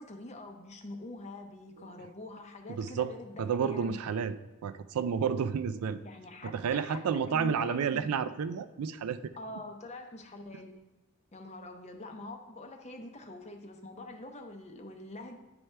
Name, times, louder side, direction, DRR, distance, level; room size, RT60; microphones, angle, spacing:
voice 1, 0.0-4.0 6.0-8.1 9.4-10.8 11.3-15.4, left 2 dB, 30° left, 5 dB, 0.6 m, -45 dB
voice 2, 2.7-4.4 4.6-6.0 6.4-9.2, right 6 dB, 80° right, 11 dB, 0.4 m, -31 dB
9.4 x 4.4 x 3.3 m, 1.0 s
head